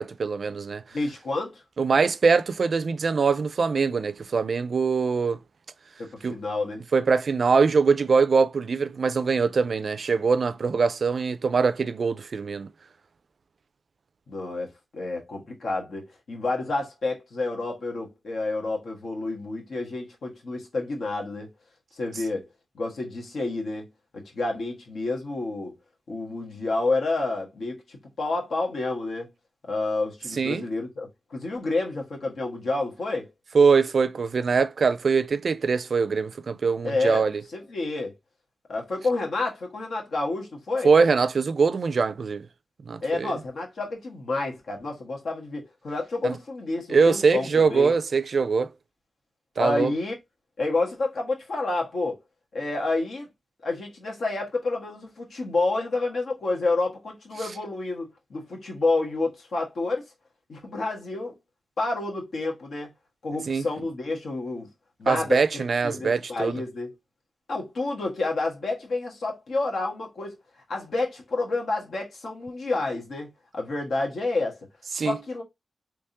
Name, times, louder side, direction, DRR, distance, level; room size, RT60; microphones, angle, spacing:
voice 1, 0.0-0.8 1.8-5.4 6.2-6.4 6.9-12.7 30.4-30.6 33.5-37.4 40.8-42.5 42.9-43.3 46.2-46.3 46.9-48.7 49.6-49.9 63.5-63.7 65.1-66.6 74.9-75.2, right 5 dB, 60° right, 0.4 m, -23 dB
voice 2, 0.9-1.6 6.0-6.9 14.3-21.5 21.9-22.5 22.7-25.7 26.1-29.3 29.6-33.3 36.8-37.2 37.5-38.1 38.7-40.9 43.0-47.9 49.6-50.2 50.6-52.2 52.5-53.3 53.6-60.0 60.5-61.3 61.8-62.9 63.2-64.7 65.0-66.9 67.5-70.4 70.7-74.6 74.9-75.4, left 3 dB, 80° left, 1.4 m, -29 dB
3.5 x 3.1 x 2.7 m
wide cardioid pair, 100°, 0 cm